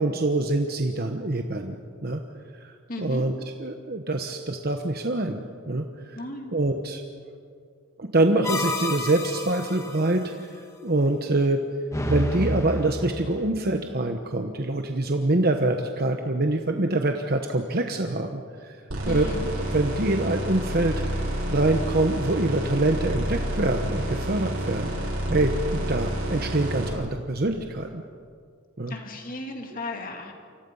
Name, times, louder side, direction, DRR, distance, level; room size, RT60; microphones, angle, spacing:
voice 1, 0.0-1.8 2.0-2.2 2.6-2.7 3.0-3.3 3.6-6.2 6.5-7.0 8.0-11.6 12.1-18.8 19.1-19.3 19.7-28.0 28.8-28.9, right 2 dB, 45° right, 5 dB, 1.1 m, -25 dB
voice 2, 2.9-3.2 6.1-6.5 19.0-19.5 28.9-30.3, left 2 dB, 40° left, 3 dB, 3.0 m, -35 dB
sound 1, 8.4-10.1 11.9-13.5, left 1 dB, 15° left, 1.7 m, -30 dB
sound 2, 18.9-26.9, right 1 dB, 85° right, 7.4 m, -29 dB
29.0 x 25.0 x 5.6 m, 2.2 s
head